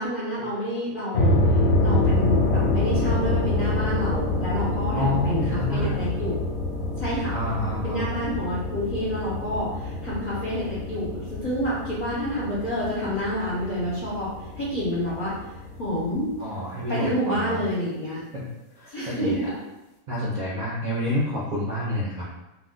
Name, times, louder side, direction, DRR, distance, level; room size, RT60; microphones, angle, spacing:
voice 1, 0.0-6.4 7.0-7.3 7.8-14.3 14.6-15.3 15.8-16.3 16.9-18.2 18.9-19.4, equal, 40° left, -8 dB, 0.6 m, -28 dB
sound 1, 1.1-16.4, left 2 dB, 70° left, 0.9 m, -26 dB
voice 2, 4.9-6.1 7.3-8.1 16.4-17.6 18.3-18.4 18.7-19.5 20.1-22.3, left 1 dB, 55° right, -7 dB, 0.5 m, -28 dB
2.4 x 2.3 x 3.6 m, 0.99 s
omnidirectional pair, 1.5 m